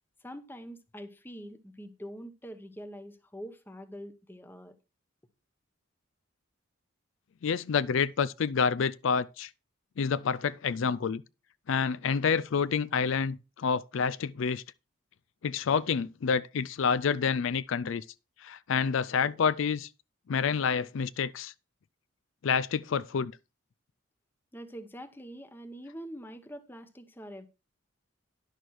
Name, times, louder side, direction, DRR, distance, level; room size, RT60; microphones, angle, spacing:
voice 1, 0.2-4.8 24.5-27.5, equal, 10° left, 0.9 m, -44 dB
voice 2, 7.4-9.5 10.0-11.2 11.7-14.6 15.4-18.0 18.4-19.9 20.3-21.5 22.4-23.3, left 6 dB, 65° left, 0.4 m, -28 dB
11.0 x 6.5 x 4.6 m
head